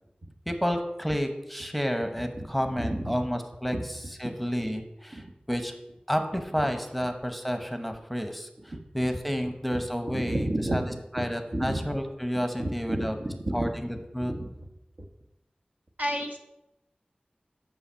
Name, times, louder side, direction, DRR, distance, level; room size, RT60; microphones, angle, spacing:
voice 1, 0.5-5.7 6.1-10.8 11.1-13.1 13.5-14.3, equal, ahead, 6 dB, 0.8 m, -30 dB
voice 2, 2.8-3.1 3.7-3.8 4.6-4.7 5.1-5.2 9.7-9.8 10.1-11.2 11.5-11.8 12.6-14.5 16.0-16.4, right 1 dB, 60° right, 2 dB, 1.0 m, -31 dB
6.6 x 5.6 x 5.6 m, 0.92 s
wide cardioid pair, 45°, 3 cm